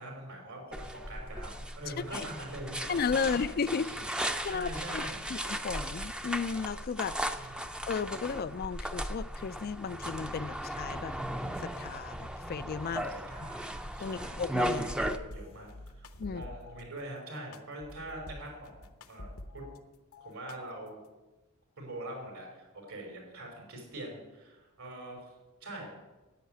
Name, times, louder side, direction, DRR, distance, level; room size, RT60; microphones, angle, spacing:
voice 1, 0.0-4.1 4.4-5.6 7.3-7.8 13.0-14.4 15.0-15.7 16.0-19.3 19.5-19.6 20.2-21.0 21.8-25.3 25.6-25.9, right 1 dB, 80° right, 5.2 m, -44 dB
sound 1, 0.7-15.2, equal, 5° right, 0.6 m, -36 dB
voice 2, 2.9-3.9 4.2-7.2 7.9-11.1 11.6-13.1 14.0-15.0 16.2-16.4, left 5 dB, 45° left, 0.4 m, -34 dB
sound 2, 15.3-16.8 17.5-19.8 20.1-21.1, left 1 dB, 75° left, 1.0 m, -48 dB
10.5 x 9.2 x 9.4 m
head